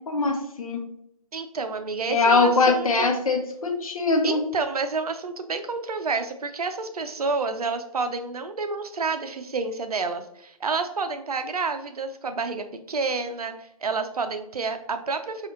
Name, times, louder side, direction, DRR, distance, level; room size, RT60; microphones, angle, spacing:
voice 1, 0.1-0.8 2.1-4.4, left 3 dB, 65° left, 3 dB, 0.8 m, -22 dB
voice 2, 1.3-3.1 4.2-15.5, right 4 dB, 75° right, 8 dB, 0.5 m, -29 dB
4.0 x 2.4 x 2.9 m, 0.73 s
figure-of-eight pair, 140°, 19 cm